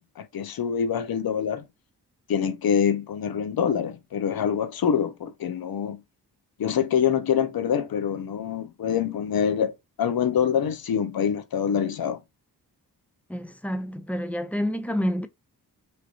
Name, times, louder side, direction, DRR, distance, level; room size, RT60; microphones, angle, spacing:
voice 1, 0.0-1.6 2.3-6.0 6.6-12.2, left 8 dB, 65° left, 0.6 m, -25 dB
voice 2, 13.3-15.3, equal, 5° left, 0.4 m, -28 dB
3.2 x 2.7 x 2.4 m
cardioid pair, 65°, 39 cm